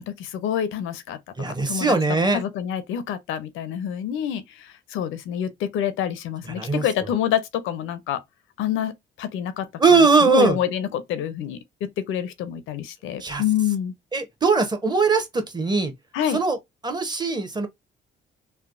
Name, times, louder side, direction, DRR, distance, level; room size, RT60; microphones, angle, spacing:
voice 1, 0.0-1.2 1.7-1.9 2.3-8.2 8.6-13.9 16.1-16.4, left 10 dB, 90° left, 0.5 m, -27 dB
voice 2, 1.4-2.4 6.5-6.8 9.8-10.6 13.2-13.4 14.1-15.9 16.3-16.6 16.8-17.7, right 4 dB, 20° right, 0.7 m, -20 dB
3.2 x 2.1 x 2.4 m
cardioid pair, 90°, 20 cm